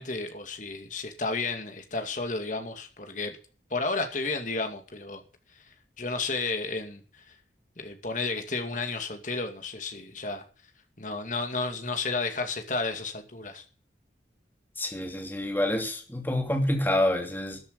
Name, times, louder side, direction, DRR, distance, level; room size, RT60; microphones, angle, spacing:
voice 1, 0.0-3.4 3.7-5.2 6.0-7.0 7.8-10.4 11.0-13.6, left 3 dB, 45° left, 2.4 m, -32 dB
voice 2, 14.8-17.6, left 1 dB, 10° left, 2.6 m, -27 dB
13.5 x 8.0 x 7.0 m
head